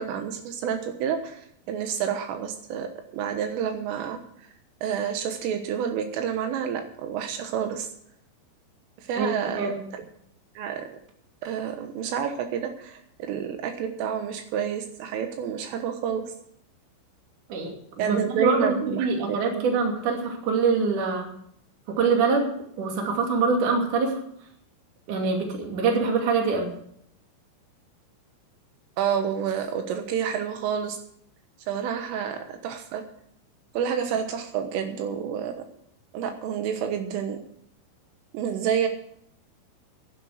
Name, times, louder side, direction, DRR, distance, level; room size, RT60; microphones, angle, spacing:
voice 1, 0.0-1.4 1.7-2.9 3.1-4.2 4.8-7.9 9.0-10.0 10.6-10.9 11.4-16.2 18.0-19.7 29.0-31.0 31.7-33.0 33.8-35.5 36.1-37.4 38.3-38.9, right 8 dB, 80° right, 5 dB, 3.7 m, -29 dB
voice 2, 9.2-9.8 17.5-17.7 18.0-21.3 22.0-22.5 22.8-24.2 25.1-26.8, right 4 dB, 45° right, 2 dB, 3.5 m, -24 dB
11.5 x 11.5 x 6.5 m, 0.69 s
omnidirectional pair, 5.8 m